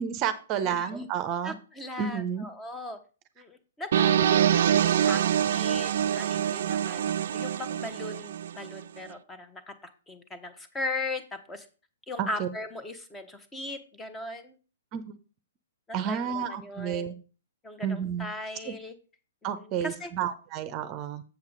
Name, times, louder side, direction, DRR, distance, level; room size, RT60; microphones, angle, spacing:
voice 1, 0.0-1.5 2.0-2.5 12.2-12.5 14.9-15.0 15.9-17.1 17.8-18.3 18.7-18.8 19.4-21.2, right 8 dB, 30° right, 11 dB, 0.7 m, -30 dB
voice 2, 0.6-1.1 1.4-3.0 3.4-9.7 10.1-11.7 12.1-14.6 15.9-17.1 17.6-18.9 19.4-20.1, left 2 dB, 10° left, 9 dB, 1.0 m, -38 dB
sound 1, 3.9-8.8, right 10 dB, 55° right, 0.4 m, -25 dB
7.3 x 7.2 x 3.9 m, 0.36 s
figure-of-eight pair, 115°, 0 cm